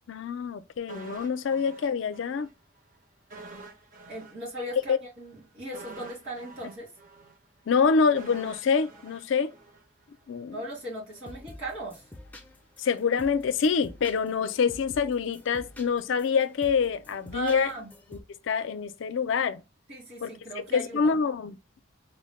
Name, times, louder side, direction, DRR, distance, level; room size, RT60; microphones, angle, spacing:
voice 1, 0.1-2.5 4.9-5.0 7.7-9.5 10.3-10.6 12.8-17.7 18.5-19.6 20.2-20.3 20.7-21.6, left 5 dB, 65° left, 0.4 m, -26 dB
sound 1, 0.9-2.5 2.8-2.9 3.3-10.4 10.7-10.8, right 3 dB, 40° right, 0.6 m, -48 dB
voice 2, 4.1-6.9 10.5-12.0 17.3-17.9 19.9-21.2, right 1 dB, 75° right, 2.2 m, -37 dB
sound 2, 11.1-18.2, left 1 dB, 10° left, 0.4 m, -49 dB
4.1 x 2.1 x 3.0 m
head